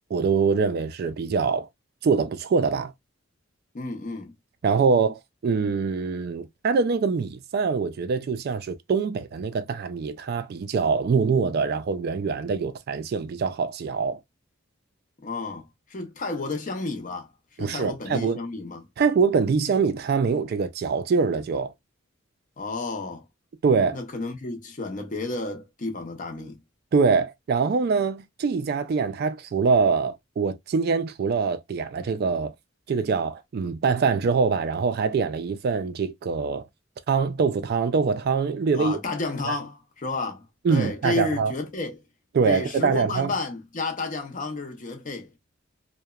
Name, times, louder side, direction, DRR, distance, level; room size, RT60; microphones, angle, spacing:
voice 1, 0.1-1.7 2.0-2.9 4.6-14.2 17.6-18.4 19.0-21.7 23.6-24.0 26.9-32.5 32.9-36.6 37.1-39.0 39.4-39.6 40.6-41.5 42.3-43.3, right 5 dB, 50° right, 0.3 m, -24 dB
voice 2, 3.7-4.3 15.2-17.3 17.6-18.9 22.6-23.2 23.9-26.6 38.7-42.0 42.4-45.4, left 3 dB, 40° left, 0.6 m, -31 dB
2.8 x 2.1 x 2.2 m
head